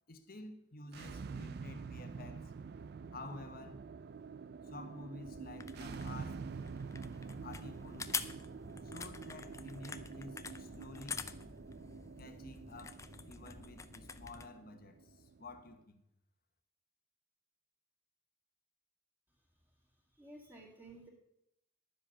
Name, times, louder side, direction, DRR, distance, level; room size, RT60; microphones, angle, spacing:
voice 1, 0.1-2.5 3.1-3.8 4.6-6.4 7.4-8.2 8.8-11.3 12.2-13.0 13.3-16.0, left 2 dB, 45° left, 7 dB, 1.2 m, -51 dB
sound 1, 0.8-15.8, right 5 dB, 50° right, 0.4 m, -47 dB
sound 2, 5.2-14.5, left 5 dB, 15° left, 0.4 m, -46 dB
voice 2, 19.7-21.1, right 2 dB, 10° right, -2 dB, 2.3 m, -55 dB
11.5 x 7.7 x 5.6 m, 0.79 s
head